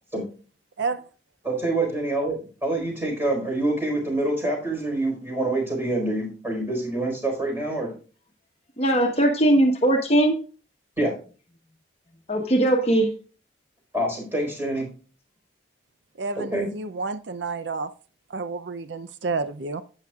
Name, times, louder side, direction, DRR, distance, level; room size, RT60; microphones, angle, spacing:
voice 1, 1.4-7.9 11.0-11.1 13.9-14.9 16.4-16.7, right 2 dB, 10° right, 4.3 m, -26 dB
voice 2, 8.8-10.4 12.3-13.1, right 1 dB, 35° left, 1.1 m, -19 dB
voice 3, 16.2-17.9 18.3-19.8, right 4 dB, 75° right, 0.5 m, -30 dB
11.5 x 9.0 x 2.4 m
head